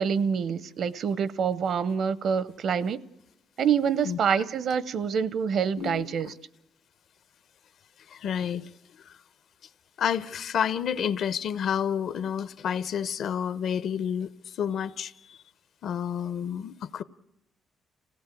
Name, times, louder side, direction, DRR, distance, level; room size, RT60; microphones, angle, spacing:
voice 1, 0.0-3.0 3.6-6.3, right 7 dB, 55° right, 0.7 m, -26 dB
voice 2, 5.8-6.3 8.1-8.7 9.1-9.2 10.0-14.3 14.6-15.4 15.8-17.0, left 8 dB, 60° left, 0.8 m, -30 dB
26.5 x 17.0 x 8.3 m
cardioid pair, 150°, 0 cm